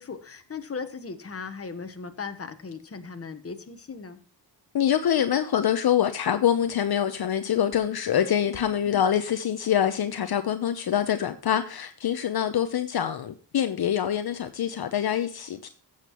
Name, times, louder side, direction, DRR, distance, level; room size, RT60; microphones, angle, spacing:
voice 1, 0.0-4.2 8.5-8.8, left 5 dB, 35° left, 1.2 m, -38 dB
voice 2, 4.7-15.7, left 9 dB, 60° left, 0.8 m, -25 dB
15.0 x 7.5 x 3.0 m
cardioid pair, 95°, 42 cm